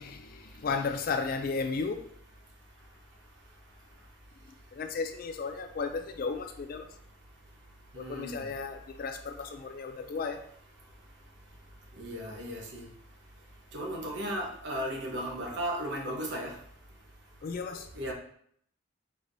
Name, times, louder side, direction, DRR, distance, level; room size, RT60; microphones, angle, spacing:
voice 1, 0.0-2.1 4.7-6.9 8.0-10.4 17.4-17.9, left 4 dB, 45° left, 7 dB, 0.3 m, -34 dB
voice 2, 7.9-8.5 12.0-12.9 13.7-16.5 17.9-18.1, equal, 55° right, -1 dB, 1.0 m, -35 dB
4.6 x 4.2 x 2.6 m, 0.68 s
head